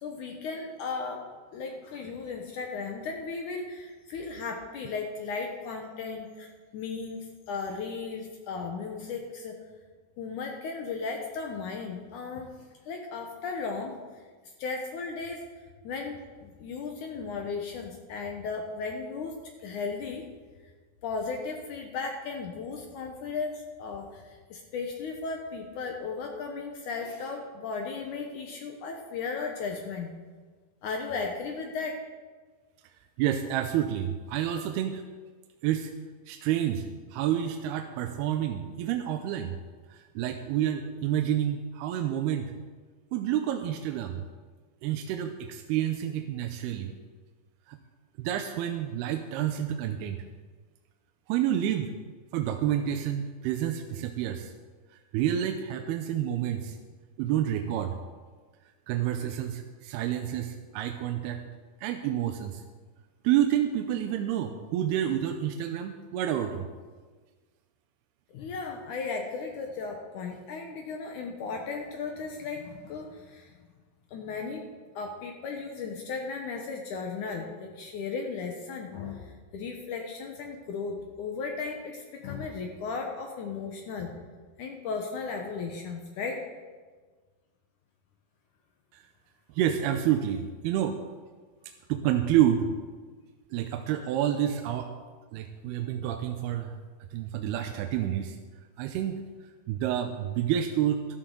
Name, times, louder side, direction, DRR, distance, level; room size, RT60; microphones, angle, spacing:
voice 1, 0.0-1.2 1.5-9.6 10.2-12.5 12.9-14.0 14.6-15.4 15.8-20.2 21.0-30.1 30.8-32.0 68.3-73.6 74.1-74.6 75.0-84.1 84.6-86.4 95.8-95.9, left 4 dB, 70° left, 2 dB, 1.9 m, -36 dB
voice 2, 33.2-35.0 35.6-35.9 36.3-39.6 39.9-42.5 43.1-44.3 44.8-46.9 47.7-47.8 48.2-50.2 51.3-51.9 52.3-54.5 55.1-56.8 57.2-58.0 58.9-61.4 61.8-62.6 63.2-66.6 88.9-89.0 89.5-91.0 91.9-92.7 93.5-94.9 95.3-96.8 97.1-98.4 98.8-99.2 99.7-101.1, right 10 dB, 85° right, 5 dB, 2.6 m, -29 dB
13.0 x 13.0 x 3.8 m, 1.4 s
omnidirectional pair, 4.6 m